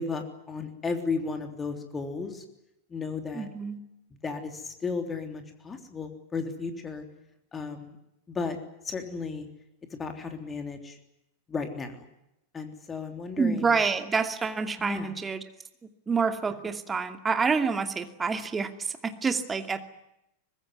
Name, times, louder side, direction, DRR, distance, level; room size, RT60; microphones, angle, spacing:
voice 1, 0.0-2.4 2.9-3.5 4.2-7.0 7.5-8.0 8.3-8.6 8.8-9.5 9.9-11.0 11.5-12.0 12.5-13.6 14.8-15.1, left 4 dB, 20° left, 6 dB, 3.4 m, -34 dB
voice 2, 3.3-3.8 13.4-15.4 15.8-19.9, right 5 dB, 15° right, 8 dB, 2.5 m, -28 dB
24.5 x 20.5 x 9.6 m, 0.84 s
figure-of-eight pair, 90°, 0 cm